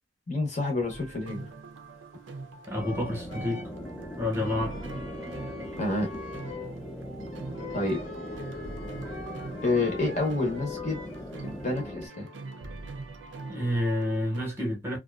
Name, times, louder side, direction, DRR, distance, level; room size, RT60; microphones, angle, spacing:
voice 1, 0.3-1.4 5.8-6.1 7.7-8.0 9.6-11.0 11.4-12.3, left 2 dB, 35° left, 0.7 m, -28 dB
sound 1, 0.9-14.4, right 3 dB, 70° right, 0.5 m, -43 dB
sound 2, 1.7-1.8 2.7-3.9 4.3-6.8 7.2-7.3 7.5-11.6, left 4 dB, 90° left, 0.8 m, -43 dB
voice 2, 2.7-3.6 4.2-4.8 13.4-15.0, left 1 dB, 10° right, 0.9 m, -29 dB
sound 3, 2.8-12.1, equal, 10° left, 0.4 m, -40 dB
2.6 x 2.3 x 2.3 m
head